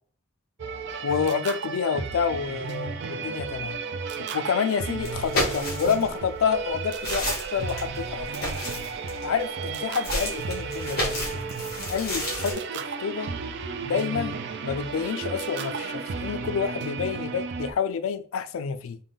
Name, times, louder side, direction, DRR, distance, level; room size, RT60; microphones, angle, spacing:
sound 1, 0.6-17.7, right 5 dB, 55° right, 0.4 m, -33 dB
voice 1, 1.0-3.8 4.2-8.3 9.2-11.5 11.9-12.6 13.0-13.3 13.8-19.0, left 6 dB, 80° left, 0.4 m, -28 dB
sound 2, 5.0-6.2 6.7-9.4 10.0-12.5, left 1 dB, 50° left, 1.6 m, -31 dB
3.7 x 2.3 x 3.6 m
head